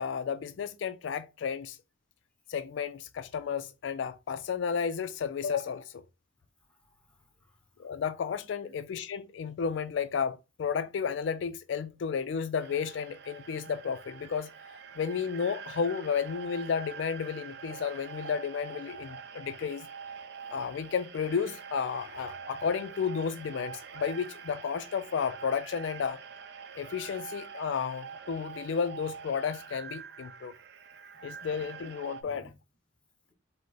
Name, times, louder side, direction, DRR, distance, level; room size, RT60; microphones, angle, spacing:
voice 1, 0.0-1.8 2.5-6.0 7.8-14.5 15.0-19.9 20.5-26.2 26.8-30.5 31.2-32.5, left 6 dB, 65° left, 0.3 m, -32 dB
voice 2, 6.6-7.9 8.6-8.8 32.2-32.5, left 2 dB, 5° left, 1.0 m, -56 dB
sound 1, 12.6-32.2, right 6 dB, 55° right, 0.5 m, -45 dB
5.1 x 2.1 x 4.0 m
head